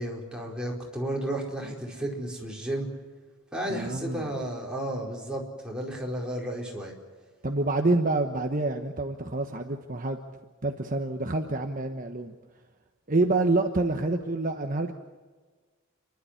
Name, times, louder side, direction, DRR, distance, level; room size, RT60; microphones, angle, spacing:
voice 1, 0.0-2.9 3.5-6.9, right 1 dB, 5° right, -3 dB, 4.7 m, -33 dB
voice 2, 3.7-4.3 7.4-10.2 10.6-12.3 13.1-14.9, right 2 dB, 40° right, 4 dB, 1.2 m, -27 dB
29.5 x 12.0 x 9.8 m, 1.4 s
head